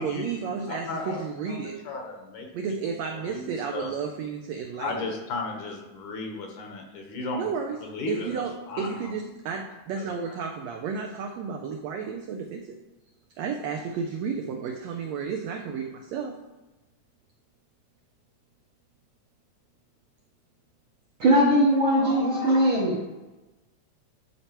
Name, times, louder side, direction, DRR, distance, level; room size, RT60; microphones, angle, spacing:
voice 1, 0.0-1.7 2.5-5.1 7.3-7.8 8.1-12.6 13.4-16.3, right 6 dB, 85° right, 2 dB, 1.5 m, -32 dB
voice 2, 0.7-3.9 4.8-7.5 7.8-9.1 10.0-10.4, left 3 dB, 75° left, 2 dB, 2.4 m, -35 dB
voice 3, 21.2-23.1, equal, 60° right, -5 dB, 1.3 m, -20 dB
11.5 x 4.4 x 3.0 m, 1.1 s
omnidirectional pair, 3.7 m